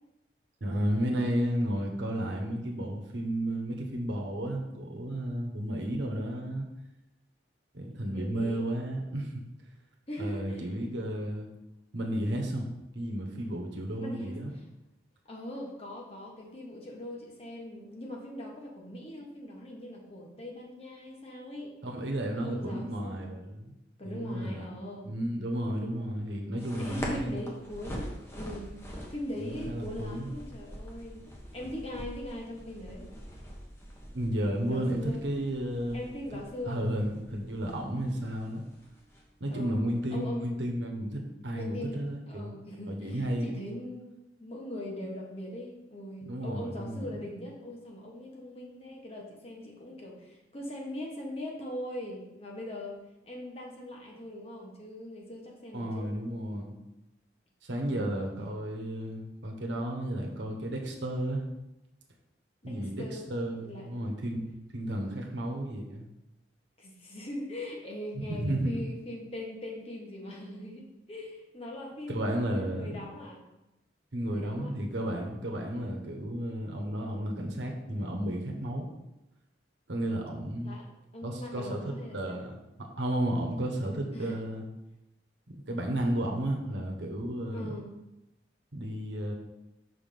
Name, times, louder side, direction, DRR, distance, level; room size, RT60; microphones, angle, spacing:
voice 1, 0.6-6.7 7.7-9.3 10.2-11.5 11.9-12.7 12.9-14.5 21.8-23.7 24.0-24.7 25.0-27.3 29.4-30.3 34.1-36.0 36.7-38.6 39.4-42.5 42.9-43.6 46.3-47.1 55.7-56.7 57.6-61.4 62.6-66.1 68.2-68.9 72.1-73.0 74.1-78.9 79.9-80.8 81.2-84.7 85.5-87.8 88.7-89.3, right 1 dB, 80° right, 1 dB, 1.1 m, -33 dB
voice 2, 8.1-8.7 10.1-10.7 14.0-14.4 15.3-21.7 22.4-23.2 24.0-25.1 26.8-31.2 31.5-33.1 34.7-35.2 35.9-36.9 39.5-40.7 41.5-53.0 53.2-56.1 57.8-58.3 62.6-63.2 63.6-64.0 65.0-65.2 66.8-73.4 74.3-74.7 80.6-80.9 81.1-82.5 84.1-84.4 87.5-87.9, left 1 dB, 35° left, -1 dB, 1.3 m, -41 dB
sound 1, 26.6-40.1, equal, 15° left, 1.0 m, -44 dB
5.8 x 3.6 x 5.8 m, 0.93 s
head